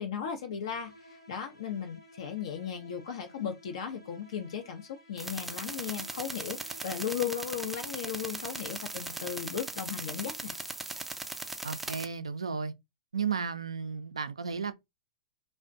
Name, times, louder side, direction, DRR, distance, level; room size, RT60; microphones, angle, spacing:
voice 1, 0.0-10.6, left 8 dB, 65° left, 0.5 m, -36 dB
sound 1, 0.7-10.9, right 1 dB, 85° left, 1.0 m, -55 dB
sound 2, 5.2-12.1, right 2 dB, 5° right, 0.4 m, -39 dB
voice 2, 11.6-12.7 13.1-14.7, right 6 dB, 85° right, 0.3 m, -33 dB
2.4 x 2.1 x 2.4 m
hypercardioid pair, 105°, 3 cm